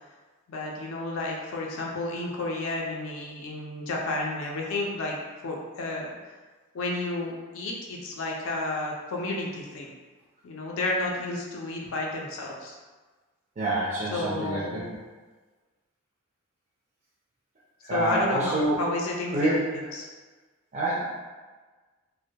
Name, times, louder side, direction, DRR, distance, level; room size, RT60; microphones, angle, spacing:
voice 1, 0.5-6.1 6.7-9.9 10.4-12.8 14.1-14.9 17.9-19.6 19.9-20.1, left 2 dB, 70° left, -2 dB, 0.4 m, -31 dB
voice 2, 13.6-14.8 17.8-18.8 19.3-19.6 20.7-21.0, right 1 dB, 35° right, -7 dB, 0.3 m, -27 dB
2.2 x 2.1 x 2.7 m, 1.3 s
head